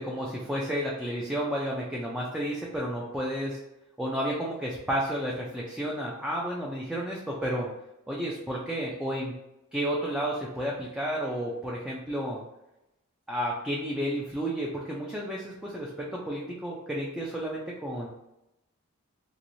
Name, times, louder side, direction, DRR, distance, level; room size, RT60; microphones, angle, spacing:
voice 1, 0.0-3.6 4.0-7.7 8.1-9.3 9.7-12.4 13.3-18.1, equal, 5° right, -4 dB, 0.4 m, -31 dB
3.1 x 3.0 x 2.6 m, 0.90 s
head